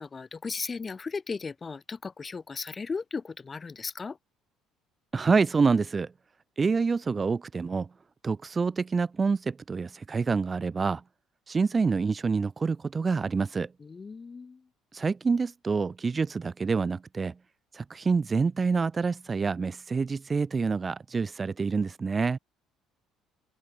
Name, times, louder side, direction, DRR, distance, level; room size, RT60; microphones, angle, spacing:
voice 1, 0.0-4.2 13.8-14.7, left 4 dB, 30° left, 2.3 m, -36 dB
voice 2, 5.1-6.1 6.6-7.9 8.2-11.0 11.5-13.7 14.9-17.3 17.7-22.4, right 4 dB, 30° right, 0.4 m, -27 dB
open air
supercardioid pair, 85°, 0 cm